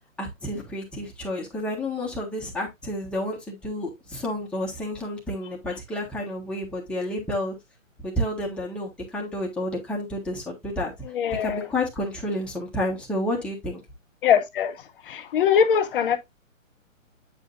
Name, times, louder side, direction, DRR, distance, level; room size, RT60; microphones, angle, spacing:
voice 1, 0.2-7.5 8.0-10.9 11.4-13.8, left 1 dB, ahead, 1.4 m, -30 dB
voice 2, 11.1-11.7 14.2-14.8 15.0-16.2, left 8 dB, 40° left, 0.9 m, -22 dB
8.4 x 5.1 x 2.5 m
hypercardioid pair, 145°, 40 cm